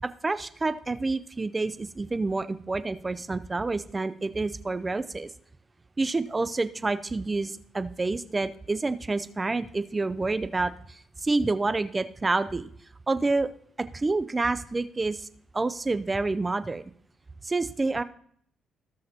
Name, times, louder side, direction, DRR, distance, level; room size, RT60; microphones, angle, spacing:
voice 1, 0.0-5.3 6.0-12.7 13.1-13.5 13.8-15.3 15.5-16.8 17.4-18.0, right 3 dB, 25° right, 13 dB, 0.5 m, -28 dB
18.5 x 6.4 x 2.9 m, 0.62 s
cardioid pair, 90°, 0 cm